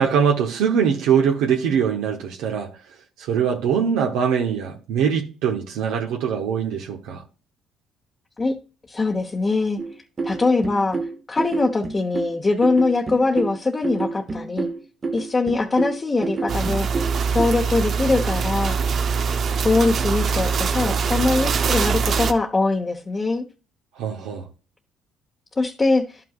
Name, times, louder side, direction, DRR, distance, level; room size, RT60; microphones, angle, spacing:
voice 1, 0.0-2.7 3.2-7.2 24.0-24.5, right 7 dB, 80° right, 1.2 m, -22 dB
voice 2, 8.9-9.8 10.2-11.0 11.3-14.7 15.1-16.9 17.3-18.8 19.6-23.5 25.6-26.2, left 3 dB, 25° left, 1.1 m, -22 dB
sound 1, 9.8-17.5, right 4 dB, 30° right, 1.0 m, -29 dB
sound 2, 16.5-22.3, right 5 dB, 50° right, 0.7 m, -23 dB
11.0 x 5.8 x 2.5 m
supercardioid pair, 85°, 0 cm